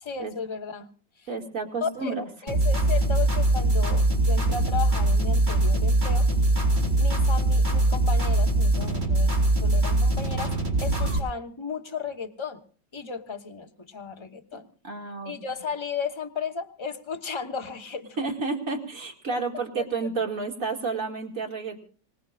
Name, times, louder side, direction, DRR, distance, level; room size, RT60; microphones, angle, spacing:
voice 1, 0.0-0.9 1.8-2.1 2.4-6.3 6.9-10.6 10.8-12.6 12.9-14.7 15.2-18.2 19.8-19.9, left 6 dB, 20° left, 6 dB, 1.0 m, -34 dB
voice 2, 1.3-2.3 14.8-15.3 18.2-21.8, right 4 dB, 50° right, 1 dB, 2.7 m, -30 dB
sound 1, 2.5-11.2, right 2 dB, 25° right, 3.8 m, -22 dB
26.0 x 19.0 x 2.5 m, 0.40 s
omnidirectional pair, 1.9 m